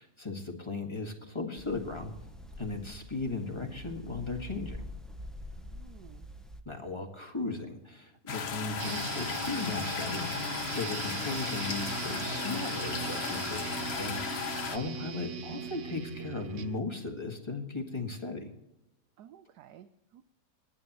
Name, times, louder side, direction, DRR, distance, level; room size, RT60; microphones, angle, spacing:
voice 1, 0.0-2.1 2.6-4.8 6.7-18.5, left 3 dB, 15° left, 1 dB, 1.9 m, -37 dB
sound 1, 1.6-6.6, equal, ahead, 0.3 m, -45 dB
voice 2, 5.5-6.3 19.2-20.2, right 10 dB, 80° right, 11 dB, 1.2 m, -54 dB
sound 2, 8.3-14.8, left 6 dB, 45° left, 1.0 m, -35 dB
sound 3, 8.8-16.8, right 7 dB, 55° right, 0.9 m, -39 dB
29.0 x 9.8 x 3.1 m, 0.93 s
omnidirectional pair, 1.8 m